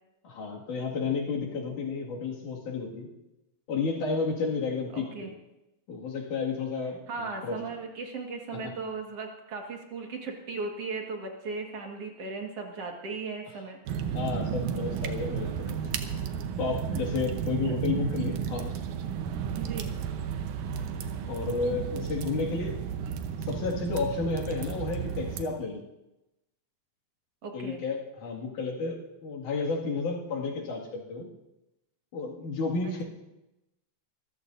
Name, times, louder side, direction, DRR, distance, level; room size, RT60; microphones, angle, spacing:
voice 1, 0.2-3.1 3.7-5.3 5.9-7.6 8.5-8.7 14.1-15.8 16.6-18.8 21.3-22.8 23.4-25.8 27.5-31.3 32.1-33.0, left 4 dB, 90° left, -1 dB, 3.7 m, -32 dB
voice 2, 4.9-5.3 7.1-13.8 16.9-17.3 17.6-17.7 19.6-19.9 27.4-27.8 32.8-33.0, right 4 dB, 55° right, 2 dB, 2.6 m, -37 dB
sound 1, 13.9-25.4, right 7 dB, 85° right, 2.4 m, -33 dB
25.5 x 15.0 x 2.6 m, 0.93 s
omnidirectional pair, 3.4 m